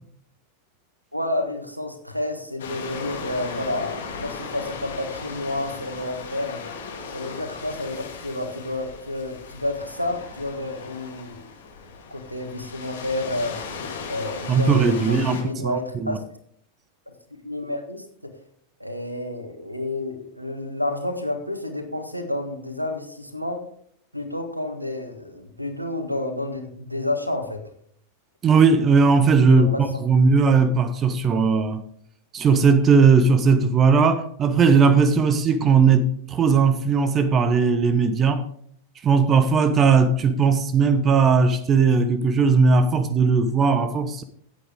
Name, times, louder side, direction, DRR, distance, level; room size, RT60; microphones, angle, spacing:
voice 1, 1.1-6.6 7.1-11.5 12.1-13.6 14.1-16.2 17.4-18.3 18.8-23.6 24.1-27.6 29.5-29.8, left 1 dB, 90° right, 1.6 m, -30 dB
sound 1, 2.6-15.4, left 5 dB, 65° left, 2.3 m, -37 dB
voice 2, 14.5-16.2 28.4-31.8 32.3-38.4 39.0-44.2, right 5 dB, 25° right, 0.8 m, -18 dB
15.5 x 8.0 x 3.6 m
figure-of-eight pair, 90°, 0 cm